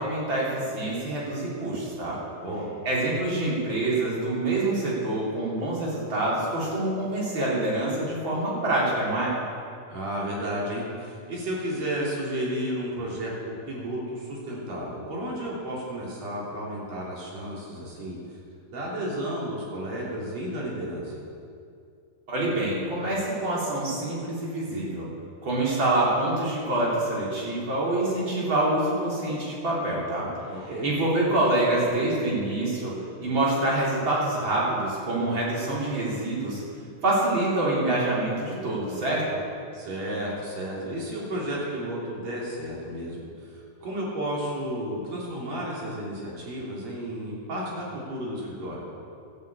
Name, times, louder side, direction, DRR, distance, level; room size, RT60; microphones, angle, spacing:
voice 1, 0.0-2.2 2.8-9.3 22.3-25.1 25.4-30.3 30.8-36.6 37.0-39.4, right 2 dB, 35° right, -6 dB, 4.0 m, -26 dB
voice 2, 2.3-2.7 9.9-18.4 18.7-21.1 30.5-30.9 39.7-48.8, right 1 dB, 55° right, -5 dB, 4.3 m, -32 dB
13.0 x 8.9 x 8.5 m, 2.4 s
omnidirectional pair, 3.8 m